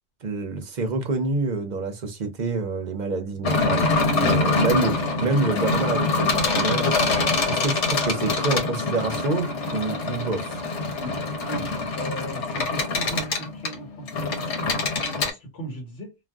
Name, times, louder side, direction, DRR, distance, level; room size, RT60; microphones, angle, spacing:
voice 1, 0.2-6.9 7.4-10.6, right 3 dB, 50° right, 0.6 m, -27 dB
sound 1, 3.4-15.3, left 3 dB, 90° left, 1.1 m, -24 dB
voice 2, 12.0-14.6 15.2-16.1, right 1 dB, 65° left, 1.3 m, -37 dB
2.5 x 2.2 x 3.3 m
omnidirectional pair, 1.2 m